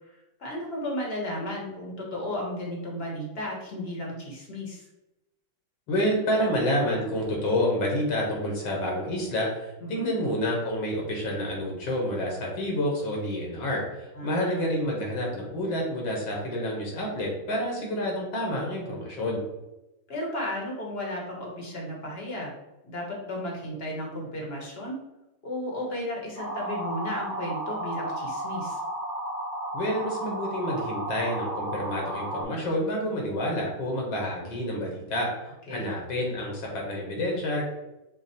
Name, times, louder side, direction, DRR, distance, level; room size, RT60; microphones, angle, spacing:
voice 1, 0.4-4.8 9.8-10.1 14.2-14.7 20.1-22.5 22.8-25.0 25.4-28.8 35.7-35.9, left 1 dB, 40° left, -2 dB, 1.0 m, -34 dB
voice 2, 5.9-19.4 29.7-35.3 35.7-37.6, left 1 dB, 75° left, -2 dB, 2.0 m, -28 dB
sound 1, 26.4-32.4, right 1 dB, 15° right, 0.6 m, -33 dB
5.8 x 2.1 x 4.2 m, 0.96 s
omnidirectional pair, 2.2 m